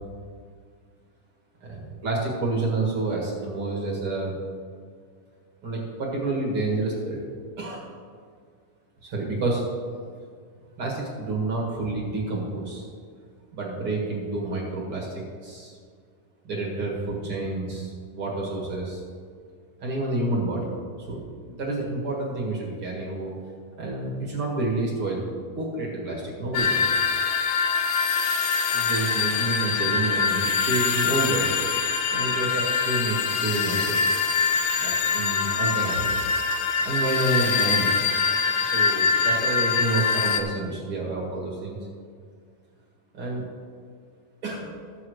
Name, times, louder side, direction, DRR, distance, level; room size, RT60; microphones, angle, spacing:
voice 1, 1.6-4.3 5.6-7.2 7.6-7.9 9.0-9.6 10.8-12.9 13.5-15.7 16.4-19.0 19.8-20.7 21.0-23.3 23.8-25.2 25.6-26.9 28.7-31.5 32.1-34.0 34.8-36.3 36.8-37.9 38.6-41.8 43.1-43.4 44.4-44.7, right 2 dB, 45° right, -3 dB, 2.3 m, -29 dB
sound 1, 26.5-40.4, left 5 dB, 75° left, 1.8 m, -24 dB
21.0 x 7.1 x 3.2 m, 2.1 s
omnidirectional pair, 3.9 m